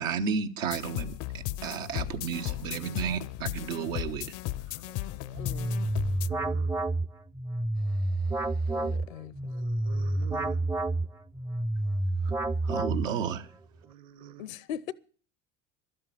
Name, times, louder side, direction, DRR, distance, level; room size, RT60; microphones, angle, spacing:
voice 1, 0.0-4.3 4.9-5.4 12.2-12.3 12.6-13.5, right 7 dB, 80° right, 1.2 m, -33 dB
sound 1, 0.7-6.3, left 16 dB, 50° left, 0.5 m, -36 dB
voice 2, 2.6-3.0 6.0-6.7 9.4-10.6 13.8-14.5, right 11 dB, 55° right, 1.3 m, -47 dB
sound 2, 5.3-13.4, right 2 dB, 5° right, 0.5 m, -29 dB
voice 3, 5.4-5.8 8.7-9.4 14.4-14.9, left 10 dB, 80° left, 0.7 m, -39 dB
12.0 x 7.8 x 8.9 m
hypercardioid pair, 75°, 39 cm